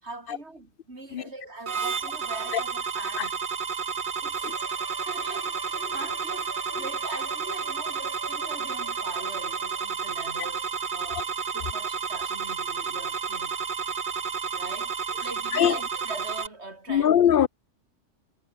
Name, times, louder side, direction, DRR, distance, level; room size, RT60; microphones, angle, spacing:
voice 1, 0.0-3.4 4.2-4.6 5.0-13.7 14.6-17.2, right 2 dB, 60° right, 4.3 m, -41 dB
sound 1, 1.7-16.5, right 6 dB, 45° right, 1.1 m, -31 dB
Bowed string instrument, 4.3-10.1, left 1 dB, 10° left, 2.1 m, -45 dB
voice 2, 16.9-17.5, left 9 dB, 55° left, 0.7 m, -21 dB
omnidirectional pair, 1.2 m